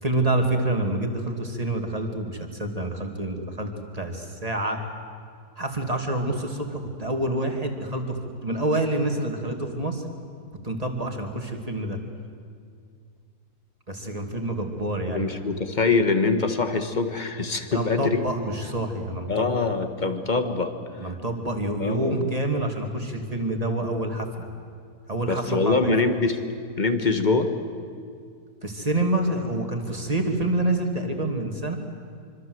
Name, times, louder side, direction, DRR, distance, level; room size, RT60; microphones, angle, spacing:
voice 1, 0.0-4.8 5.6-10.0 10.6-12.0 13.9-15.3 17.7-19.5 21.0-24.5 25.1-25.8 28.6-31.8, right 1 dB, 20° right, 3 dB, 2.5 m, -27 dB
voice 2, 15.1-18.2 19.3-20.7 21.8-22.3 25.3-26.4 26.8-27.5, left 3 dB, 30° left, 8 dB, 1.6 m, -24 dB
26.0 x 25.0 x 7.9 m, 2.2 s
omnidirectional pair, 1.8 m